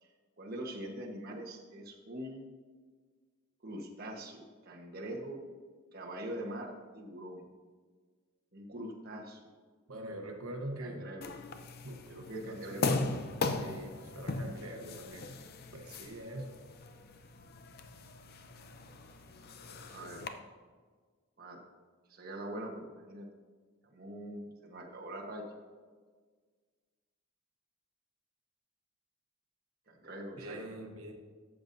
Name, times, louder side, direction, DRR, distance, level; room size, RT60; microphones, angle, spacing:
voice 1, 0.0-2.4 3.6-5.4 5.9-7.5 8.5-9.4 10.6-11.4 12.1-12.9 19.6-20.3 21.4-21.6 22.1-23.3 23.8-25.4 29.9-30.6, right 1 dB, 45° right, -1 dB, 1.2 m, -43 dB
voice 2, 9.9-11.1 11.8-13.0 13.4-15.3 15.7-16.6 30.4-31.1, right 1 dB, 80° right, 3 dB, 1.0 m, -43 dB
sound 1, 11.2-20.3, left 3 dB, 45° left, 0.6 m, -39 dB
13.5 x 7.0 x 2.7 m, 1.5 s
head